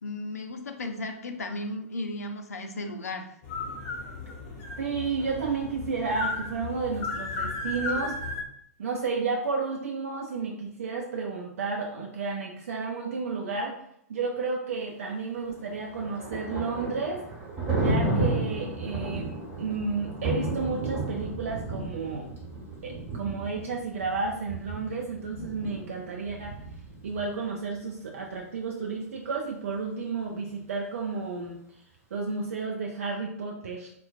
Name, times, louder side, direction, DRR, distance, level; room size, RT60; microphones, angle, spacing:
voice 1, 0.0-3.3, left 2 dB, 75° left, 5 dB, 0.4 m, -35 dB
sound 1, 3.4-8.4, left 3 dB, 30° left, 0.8 m, -34 dB
voice 2, 4.8-8.2 8.8-13.7 14.1-17.2 17.7-22.3 22.8-26.6 27.0-31.6 32.1-33.9, right 4 dB, 60° right, 1 dB, 0.4 m, -32 dB
Thunder, 15.5-27.3, right 2 dB, 25° right, 1.3 m, -33 dB
4.2 x 2.1 x 2.3 m, 0.73 s
figure-of-eight pair, 105°, 8 cm